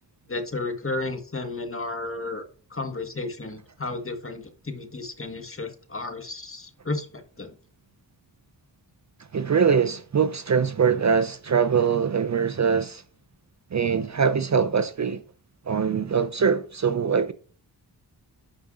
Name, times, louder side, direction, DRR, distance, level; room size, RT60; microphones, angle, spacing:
voice 1, 0.3-2.4 2.7-7.5, left 3 dB, 30° left, 1.6 m, -33 dB
voice 2, 9.3-13.0 13.7-15.2 15.7-17.3, right 6 dB, 40° right, 0.6 m, -23 dB
11.5 x 4.8 x 2.5 m
cardioid pair, 60°, 43 cm